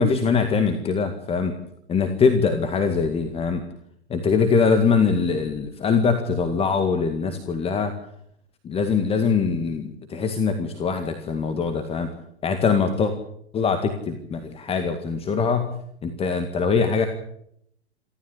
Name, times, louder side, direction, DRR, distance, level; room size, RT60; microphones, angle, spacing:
voice 1, 0.0-1.5 1.9-3.6 4.1-7.9 8.6-12.1 12.4-13.1 13.5-15.8 16.0-17.1, left 5 dB, 20° left, 8 dB, 2.0 m, -22 dB
27.5 x 13.5 x 8.4 m, 0.70 s
figure-of-eight pair, 105°, 32 cm